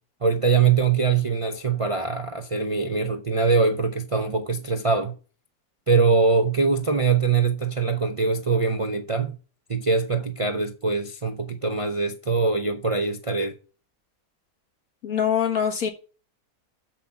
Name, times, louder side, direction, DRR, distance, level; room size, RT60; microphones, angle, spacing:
voice 1, 0.2-5.1 5.9-9.3 9.7-13.5, right 4 dB, 35° right, 0.5 m, -23 dB
voice 2, 15.0-15.9, left 8 dB, 70° left, 2.1 m, -23 dB
7.2 x 5.9 x 6.9 m
omnidirectional pair, 1.5 m